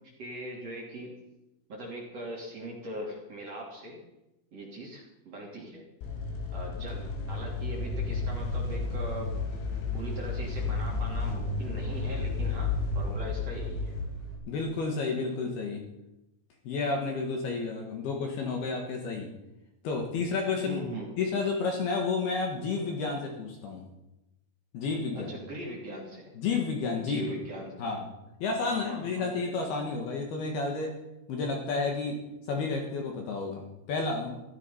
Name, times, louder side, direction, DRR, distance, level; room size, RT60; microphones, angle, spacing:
voice 1, 0.2-1.1 1.7-4.0 4.5-5.8 6.5-9.3 9.9-14.0 20.6-21.1 25.1-26.3 27.0-27.9 28.6-29.8, right 1 dB, 35° right, -3 dB, 3.5 m, -40 dB
sound 1, 6.0-14.4, left 3 dB, 80° left, 5.2 m, -32 dB
voice 2, 14.5-15.8 16.6-19.3 19.8-20.8 21.2-23.8 24.7-25.3 26.4-27.3 27.8-28.0 28.4-30.9 31.3-34.3, left 4 dB, 60° left, 1 dB, 3.1 m, -31 dB
15.5 x 13.5 x 5.6 m, 0.95 s
omnidirectional pair, 5.7 m